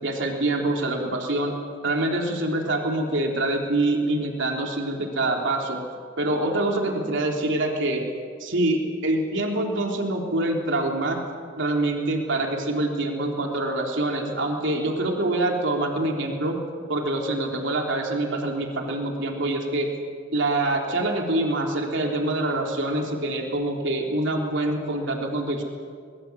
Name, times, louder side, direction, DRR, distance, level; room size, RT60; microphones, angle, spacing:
voice 1, 0.0-1.6 1.8-5.8 6.2-8.0 8.4-11.2 11.6-16.6 16.9-19.9 20.3-25.6, right 2 dB, 70° right, 1 dB, 3.5 m, -25 dB
24.0 x 21.5 x 8.2 m, 2.1 s
head